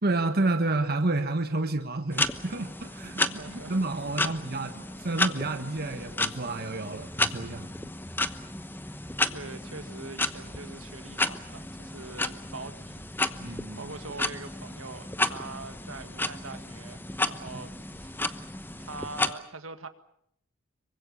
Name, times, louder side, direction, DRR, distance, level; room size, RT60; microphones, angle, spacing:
voice 1, 0.0-3.2 3.7-7.7 13.4-13.9, right 2 dB, 50° right, 1.4 m, -30 dB
sound 1, 2.1-19.3, left 2 dB, 10° left, 1.0 m, -33 dB
voice 2, 3.0-3.8 4.2-4.3 9.3-13.1 13.4-18.4 18.8-19.9, right 3 dB, 80° right, 1.9 m, -43 dB
26.0 x 24.0 x 6.8 m
head